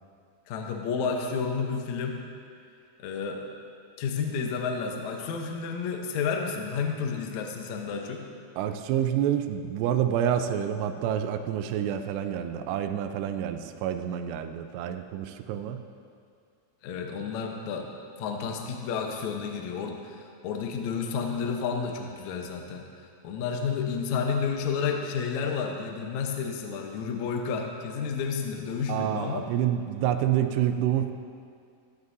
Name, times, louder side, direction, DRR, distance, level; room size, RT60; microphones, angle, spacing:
voice 1, 0.5-2.2 3.0-3.4 4.0-8.2 15.6-15.7 16.8-17.9 18.2-22.8 23.2-29.5, left 6 dB, 90° left, 2 dB, 1.6 m, -31 dB
voice 2, 8.6-15.8 28.9-31.1, right 10 dB, 85° right, 7 dB, 2.7 m, -28 dB
15.0 x 14.5 x 2.7 m, 2.3 s
omnidirectional pair, 4.8 m